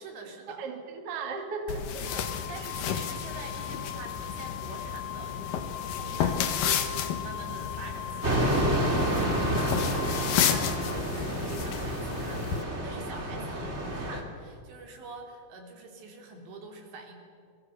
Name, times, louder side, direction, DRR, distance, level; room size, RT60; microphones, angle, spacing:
voice 1, 0.0-0.6 2.0-17.1, right 3 dB, 75° right, 3 dB, 5.4 m, -45 dB
voice 2, 0.6-2.0 9.0-9.5 13.4-13.7, right 4 dB, 45° right, 4 dB, 2.4 m, -37 dB
sound 1, 1.7-12.6, left 8 dB, 60° left, 2.6 m, -32 dB
Wind instrument woodwind instrument, 2.1-11.0, left 11 dB, 80° left, 3.1 m, -40 dB
sound 2, 8.2-14.2, right 1 dB, 20° right, 2.2 m, -29 dB
30.0 x 22.5 x 7.0 m, 2.2 s
omnidirectional pair, 5.1 m